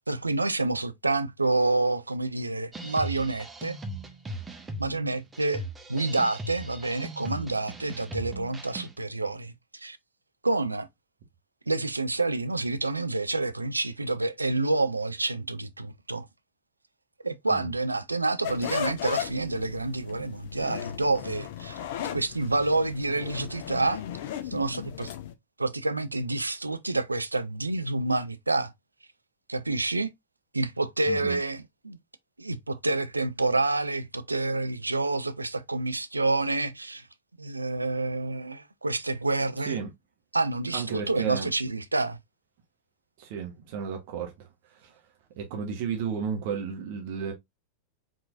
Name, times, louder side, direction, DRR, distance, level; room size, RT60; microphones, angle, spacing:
voice 1, 0.1-3.8 4.8-5.6 5.9-10.0 10.4-10.9 11.7-16.3 17.2-21.8 22.1-24.0 24.4-25.1 25.6-28.7 29.5-30.1 30.5-32.0 32.4-37.1 37.4-39.8 40.3-42.2, right 2 dB, 80° right, 0.4 m, -28 dB
sound 1, 2.7-9.0, right 2 dB, 15° right, 0.9 m, -39 dB
sound 2, 18.4-25.3, left 10 dB, 55° left, 0.6 m, -36 dB
voice 2, 31.1-31.4 39.7-39.9 40.7-41.5 43.2-45.0 45.4-47.3, right 6 dB, 50° right, 1.2 m, -33 dB
4.8 x 3.7 x 2.5 m
figure-of-eight pair, 90°, 0 cm